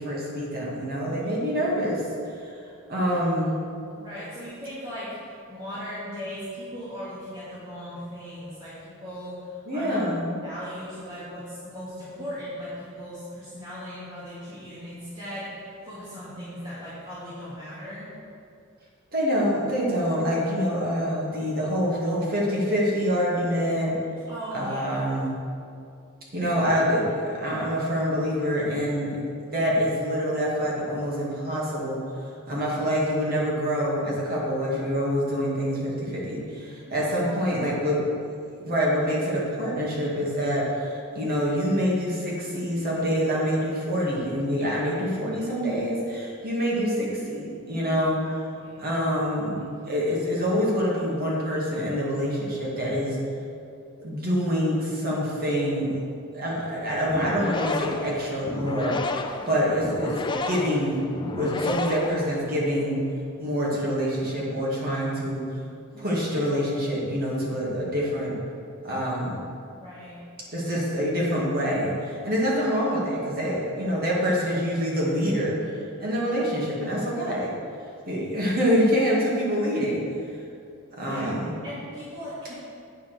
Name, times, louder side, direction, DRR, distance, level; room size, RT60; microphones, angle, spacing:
voice 1, 0.0-2.0 2.4-2.5 2.9-3.6 9.7-10.3 19.1-24.0 24.5-25.3 26.3-29.2 29.5-32.0 32.5-38.0 38.6-48.2 48.8-53.2 54.0-55.9 56.3-61.0 61.3-63.0 63.4-65.4 66.0-68.4 68.8-69.4 70.5-75.7 76.0-77.5 78.1-80.0 81.0-81.5, equal, 45° right, -5 dB, 2.2 m, -26 dB
voice 2, 3.9-10.0 10.4-18.1 24.3-25.0 36.8-37.6 47.8-48.0 48.2-48.3 48.6-48.9 59.3-59.7 65.9-66.3 69.7-70.3 76.1-76.3 79.5-79.6 81.0-81.3 81.6-82.5, equal, 25° right, -12 dB, 2.3 m, -38 dB
sound 1, 57.0-62.7, left 3 dB, 25° left, 0.5 m, -32 dB
8.8 x 5.6 x 6.9 m, 2.5 s
head